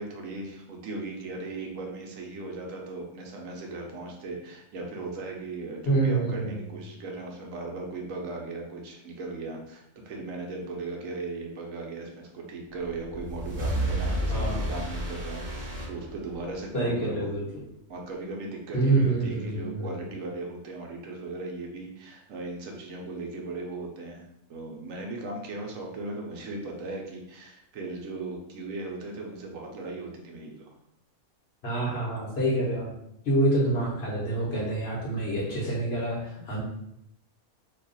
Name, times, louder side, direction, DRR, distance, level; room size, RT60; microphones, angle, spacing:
voice 1, 0.0-17.3 17.9-30.7, right 3 dB, 75° right, 0 dB, 1.0 m, -37 dB
voice 2, 5.8-6.6 14.3-14.8 16.7-17.6 18.7-20.1 31.6-32.9 33.2-36.6, right 2 dB, 50° left, -5 dB, 1.1 m, -27 dB
sound 1, 12.8-16.6, right 1 dB, 40° right, 1.1 m, -31 dB
2.8 x 2.4 x 3.9 m, 0.77 s
omnidirectional pair, 1.5 m